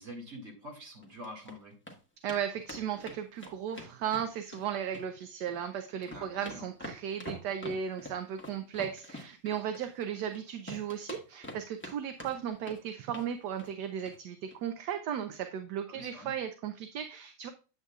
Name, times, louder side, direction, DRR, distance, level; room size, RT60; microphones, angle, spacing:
voice 1, 0.0-1.8 6.1-6.7 15.9-16.3, equal, 35° right, 0 dB, 2.4 m, -46 dB
sound 1, 1.0-1.5 1.9-2.0 2.3-2.4 2.7-4.6 4.9-5.6 5.9-10.4 10.7-11.9 12.2-12.8 13.1-13.3 13.6-13.8 14.1-14.2 14.5-14.6, left 1 dB, 10° left, 1.0 m, -45 dB
voice 2, 2.2-17.5, right 9 dB, 70° right, 8 dB, 1.1 m, -36 dB
8.2 x 8.1 x 2.4 m, 0.33 s
omnidirectional pair, 2.0 m